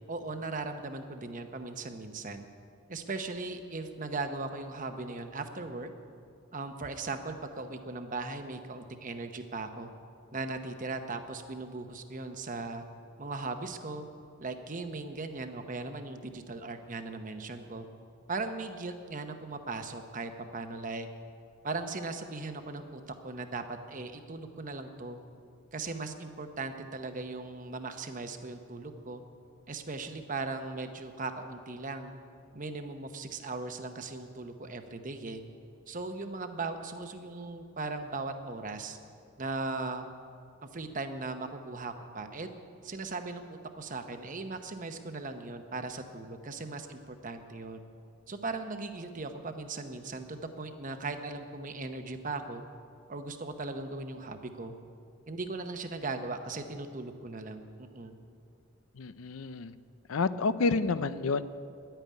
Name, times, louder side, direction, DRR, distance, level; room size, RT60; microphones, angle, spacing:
voice 1, 0.1-2.5 2.9-5.9 6.5-9.9 10.3-12.8 13.2-14.1 14.4-17.9 18.3-21.1 21.6-25.2 25.7-29.2 29.7-32.1 32.5-35.4 35.9-39.0 39.4-40.1 40.7-42.5 42.8-47.8 48.3-52.6 53.1-54.7 55.3-58.1, right 3 dB, 40° right, 7 dB, 0.9 m, -38 dB
voice 2, 59.0-59.8 60.1-61.4, left 4 dB, 85° left, 14 dB, 0.5 m, -29 dB
11.5 x 9.1 x 9.5 m, 2.4 s
head